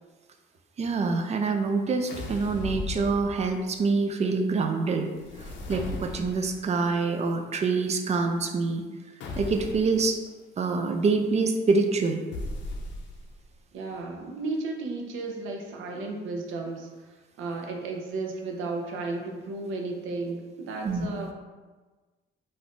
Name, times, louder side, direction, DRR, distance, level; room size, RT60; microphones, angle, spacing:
voice 1, 0.8-5.1 5.7-8.8 9.4-10.2 10.6-12.2 20.8-21.3, right 4 dB, 35° right, 5 dB, 0.4 m, -26 dB
sound 1, 2.1-3.7 5.1-6.7 9.2-10.0 12.3-13.4, left 2 dB, 70° left, 0.5 m, -37 dB
voice 2, 13.7-16.9 17.4-21.3, right 3 dB, 85° right, 1 dB, 0.5 m, -34 dB
2.5 x 2.5 x 3.5 m, 1.3 s
cardioid pair, 90°, 20 cm